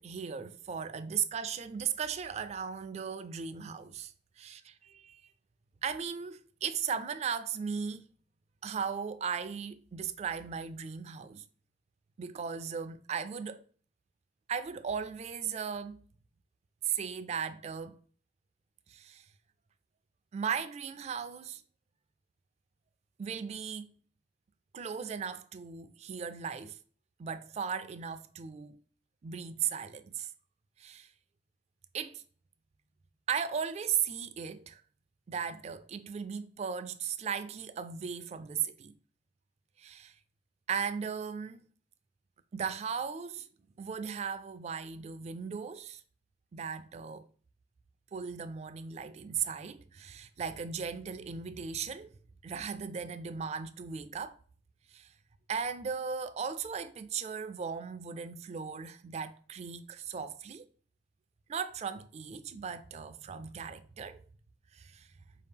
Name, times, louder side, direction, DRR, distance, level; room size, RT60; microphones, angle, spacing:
voice 1, 0.0-4.1 4.4-5.2 5.8-8.0 8.6-11.4 12.2-13.6 14.5-16.0 16.8-18.0 18.9-19.3 20.3-21.6 23.2-23.9 24.7-26.8 27.2-28.8 29.2-30.3 30.8-31.1 31.9-32.2 33.3-34.8 35.3-38.9 39.8-40.2 40.7-41.6 42.5-43.5 43.8-46.0 46.5-47.3 48.1-52.1 52.4-54.4 54.9-55.1 55.5-60.6 61.5-64.2 64.7-65.1, right 7 dB, 40° right, 0.3 m, -37 dB
4.5 x 2.8 x 3.5 m
head